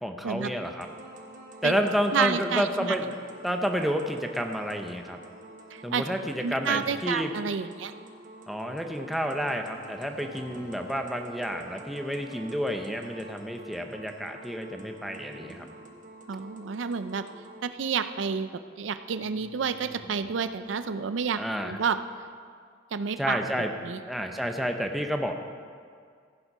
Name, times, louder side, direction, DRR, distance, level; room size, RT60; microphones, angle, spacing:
voice 1, 0.0-0.9 1.6-5.2 5.8-7.3 8.5-15.7 21.4-21.8 23.2-23.7 24.1-25.3, equal, ahead, 4 dB, 0.7 m, -30 dB
sound 1, 0.6-17.6, right 1 dB, 45° right, 1.1 m, -47 dB
voice 2, 2.1-3.0 5.7-6.0 6.4-7.9 16.3-17.2 17.6-18.5 18.8-22.0 22.9-23.4 23.8-24.0, right 6 dB, 80° right, 11 dB, 0.5 m, -29 dB
sound 2, 7.3-8.0 10.0-11.0 14.8-15.8 19.2-20.4, right 1 dB, 65° right, 2.9 m, -52 dB
15.0 x 7.4 x 5.5 m, 2.1 s
head